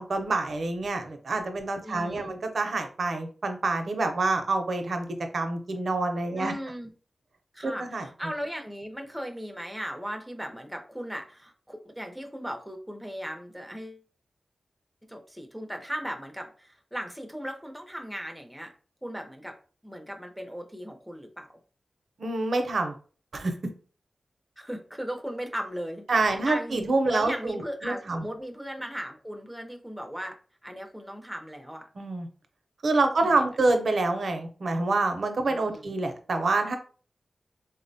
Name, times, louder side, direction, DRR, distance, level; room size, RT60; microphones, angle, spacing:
voice 1, 0.0-5.1 5.3-6.5 7.6-8.0 22.2-22.9 23.3-23.5 26.1-28.2 32.0-32.3 32.8-36.8, right 3 dB, 65° right, 6 dB, 0.5 m, -27 dB
voice 2, 1.8-2.3 6.4-6.9 7.5-14.0 15.1-18.7 19.0-19.6 19.8-21.5 24.6-30.4 30.6-31.9 33.1-33.5 35.5-36.0, equal, ahead, 3 dB, 0.5 m, -37 dB
3.7 x 2.1 x 2.6 m, 0.39 s
wide cardioid pair, 100°, 0 cm